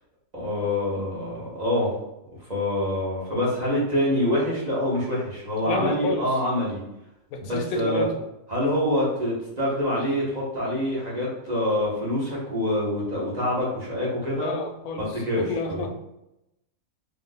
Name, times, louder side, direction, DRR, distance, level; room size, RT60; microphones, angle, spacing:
voice 1, 0.3-1.9 2.5-6.8 7.4-8.0 8.5-14.5 15.0-15.9, left 1 dB, 35° right, -6 dB, 1.1 m, -26 dB
voice 2, 5.7-6.3 7.3-8.2 14.2-15.1 15.4-15.9, left 3 dB, 90° left, 5 dB, 1.0 m, -29 dB
2.8 x 2.5 x 4.0 m, 0.89 s
omnidirectional pair, 1.4 m